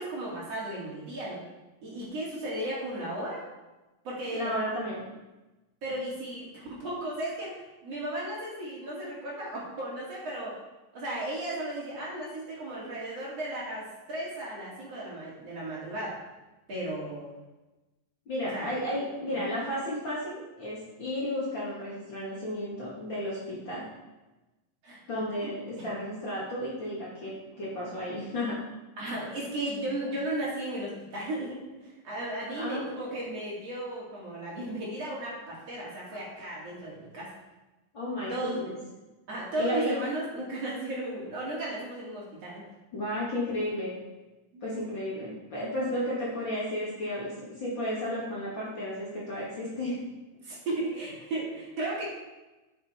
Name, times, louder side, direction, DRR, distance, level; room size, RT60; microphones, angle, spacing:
voice 1, 0.0-1.4 1.8-3.4 4.1-4.5 5.8-10.6 10.9-16.2 16.7-17.3 18.4-18.7 19.4-19.5 24.8-25.0 25.4-25.9 29.0-37.3 38.3-38.8 39.3-42.7 44.5-44.8 45.9-46.1 50.4-52.0, right 1 dB, 45° right, -6 dB, 3.4 m, -35 dB
voice 2, 4.3-5.0 18.3-23.8 25.1-28.6 32.6-32.8 37.9-38.7 39.6-40.0 42.9-44.0 44.6-50.0, left 1 dB, 35° left, -7 dB, 2.5 m, -33 dB
8.9 x 8.5 x 4.5 m, 1.1 s
omnidirectional pair, 4.0 m